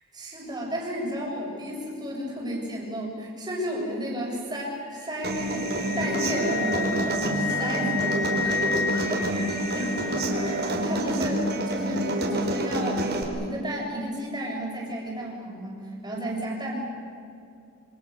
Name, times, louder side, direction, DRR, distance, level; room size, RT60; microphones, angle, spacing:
voice 1, 0.1-8.8 9.1-9.5 9.7-16.9, equal, 20° right, -2 dB, 6.9 m, -33 dB
Wind instrument woodwind instrument, 4.9-10.9, left 5 dB, 60° left, 3.7 m, -32 dB
Human voice / Acoustic guitar, 5.2-13.2, right 1 dB, 45° right, 4.5 m, -28 dB
27.5 x 26.5 x 6.9 m, 2.5 s
head